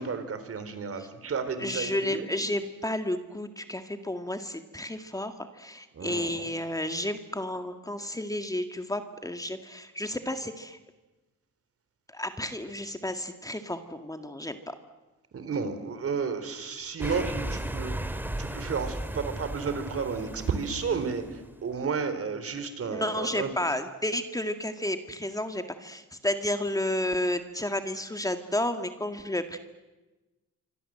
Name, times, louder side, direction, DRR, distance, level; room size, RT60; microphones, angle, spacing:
voice 1, 0.0-2.3 5.9-6.5 15.3-23.5, right 5 dB, 50° right, 10 dB, 4.0 m, -32 dB
voice 2, 1.6-10.8 12.1-14.8 22.9-29.6, left 1 dB, 10° left, 7 dB, 1.9 m, -32 dB
sound 1, 17.0-21.5, right 1 dB, 5° right, 2.1 m, -35 dB
26.5 x 25.0 x 7.8 m, 1.1 s
cardioid pair, 90°, 30 cm